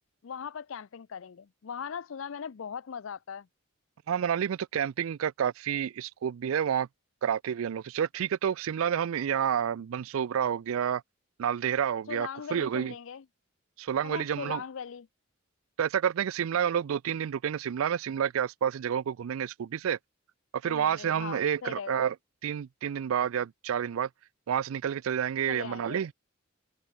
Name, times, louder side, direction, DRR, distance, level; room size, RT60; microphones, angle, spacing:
voice 1, 0.2-3.5 12.1-13.2 14.0-15.1 20.6-22.0 25.5-26.0, left 7 dB, 65° left, 0.5 m, -39 dB
voice 2, 4.1-6.9 7.2-11.0 11.4-12.9 13.8-14.6 15.8-20.0 20.6-22.1 22.4-24.1 24.5-26.1, right 8 dB, 75° right, 0.4 m, -29 dB
head